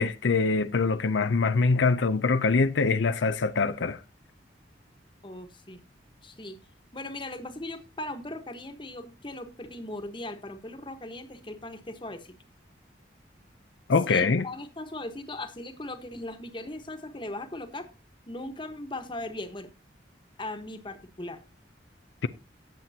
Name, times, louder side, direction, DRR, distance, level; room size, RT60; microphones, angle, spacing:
voice 1, 0.0-4.0 13.9-14.4, left 4 dB, 85° left, 0.6 m, -24 dB
voice 2, 5.2-5.8 6.2-6.6 6.9-12.3 14.1-17.9 18.3-19.7 20.4-21.4, left 1 dB, 25° left, 1.3 m, -38 dB
18.5 x 7.6 x 2.8 m
head